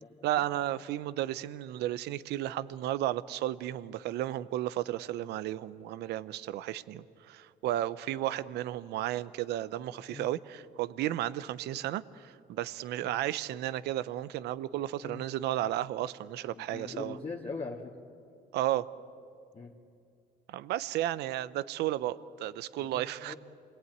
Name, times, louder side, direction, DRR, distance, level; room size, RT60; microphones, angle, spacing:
voice 1, 0.2-17.2 18.5-18.9 20.5-23.3, right 13 dB, 80° right, 16 dB, 0.7 m, -33 dB
voice 2, 14.7-15.2 16.5-17.9 19.5-19.7 22.8-23.4, left 4 dB, 35° left, -2 dB, 2.1 m, -42 dB
28.0 x 21.0 x 9.4 m, 2.5 s
cardioid pair, 110°, 17 cm